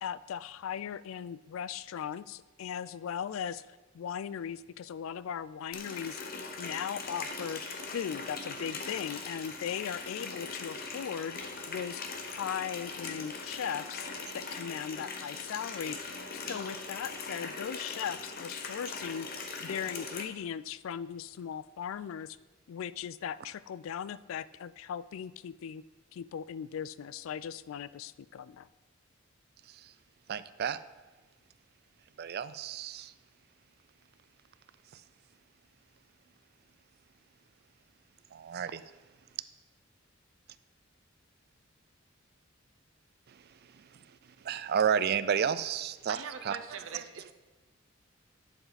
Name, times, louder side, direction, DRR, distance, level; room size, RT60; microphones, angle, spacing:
voice 1, 0.0-3.6 3.9-6.2 6.6-7.6 7.9-11.4 11.7-14.1 14.3-16.0 16.3-19.3 19.6-22.4 22.7-25.8 26.1-28.7, left 8 dB, 75° left, 18 dB, 0.3 m, -38 dB
Water tap faucet, 5.7-20.2, left 4 dB, 50° left, 1.0 m, -40 dB
voice 2, 30.3-30.8 32.2-33.1 38.3-38.8 44.4-46.2 46.5-46.6, right 7 dB, 50° right, 14 dB, 0.4 m, -30 dB
voice 3, 46.1-47.3, right 5 dB, 75° right, 8 dB, 0.9 m, -42 dB
11.0 x 7.1 x 4.1 m, 1.2 s
head